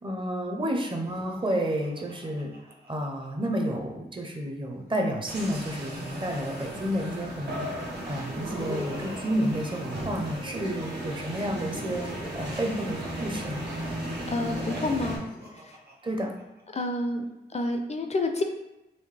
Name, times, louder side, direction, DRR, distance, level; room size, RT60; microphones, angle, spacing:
voice 1, 0.0-2.5 2.9-13.6 16.0-16.3, equal, 30° right, 2 dB, 0.6 m, -31 dB
Laughter, 0.9-3.5 4.8-7.2 8.0-10.6 11.4-13.8 14.7-16.6, equal, 65° right, 1.0 m, -43 dB
sound 1, 5.3-15.2, right 1 dB, 85° right, 1.1 m, -36 dB
voice 2, 14.3-15.2 15.5-15.8 16.7-17.2 17.5-18.4, left 2 dB, 40° left, 4 dB, 0.4 m, -29 dB
4.1 x 3.0 x 3.2 m, 0.93 s
wide cardioid pair, 105°, 17 cm